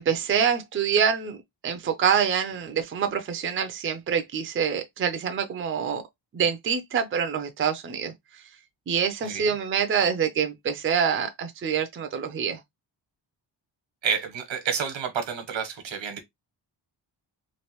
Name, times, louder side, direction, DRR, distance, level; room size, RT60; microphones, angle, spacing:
voice 1, 0.0-1.4 1.6-6.0 6.3-8.4 8.9-12.6, right 7 dB, 30° right, 0.4 m, -26 dB
voice 2, 14.0-16.2, right 6 dB, 85° right, 1.1 m, -29 dB
3.1 x 2.5 x 2.9 m
wide cardioid pair, 180°, 44 cm